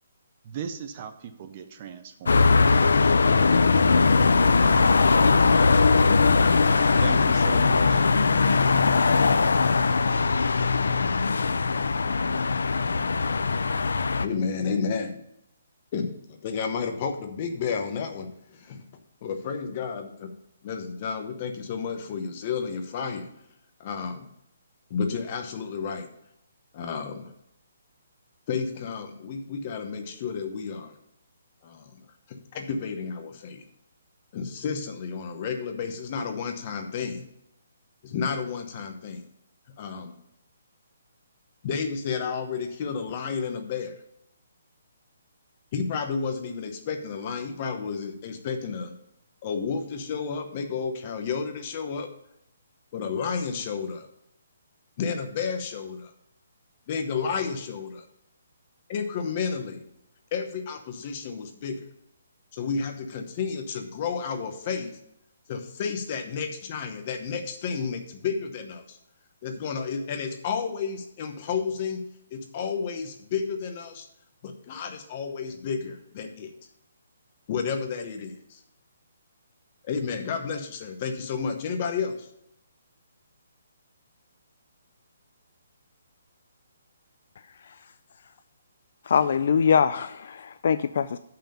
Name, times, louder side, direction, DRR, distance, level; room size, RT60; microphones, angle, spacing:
voice 1, 0.4-2.4 7.0-8.0, right 7 dB, 25° right, 8 dB, 0.5 m, -37 dB
sound 1, 2.3-14.3, left 4 dB, 90° left, 0.5 m, -20 dB
voice 2, 14.2-15.2 15.9-18.3 18.6-18.8 19.2-20.3 20.6-23.3 23.8-24.3 24.9-26.1 26.7-27.3 28.5-30.9 31.6-31.8 32.5-33.6 34.3-37.2 38.0-39.2 39.8-40.1 41.6-43.9 45.7-48.9 49.4-52.1 52.9-54.1 55.0-56.1 56.9-58.0 58.9-59.8 60.3-61.8 62.5-65.0 65.5-69.0 69.4-72.0 72.3-74.1 74.4-76.5 77.5-78.6 79.9-82.2, left 5 dB, 25° left, 5 dB, 0.9 m, -31 dB
voice 3, 89.1-91.2, left 7 dB, 45° left, 12 dB, 0.3 m, -23 dB
7.1 x 5.7 x 6.7 m, 0.78 s
hypercardioid pair, 180°, 0 cm